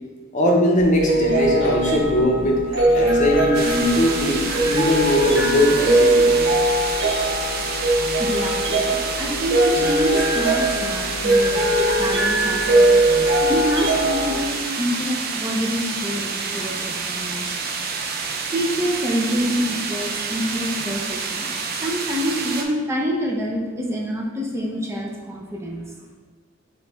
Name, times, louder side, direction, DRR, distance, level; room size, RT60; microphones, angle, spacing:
voice 1, 0.3-2.6 2.9-6.3, equal, 40° left, -1 dB, 0.8 m, -20 dB
sound 1, 0.8-14.3, right 1 dB, 70° right, 1.2 m, -20 dB
sound 2, 3.5-22.6, right 5 dB, 55° right, 0.5 m, -28 dB
voice 2, 8.2-11.6 12.0-13.0 13.4-17.7 18.5-21.5 21.8-25.9, equal, 15° right, -1 dB, 0.7 m, -26 dB
4.7 x 3.2 x 3.5 m, 1.3 s
head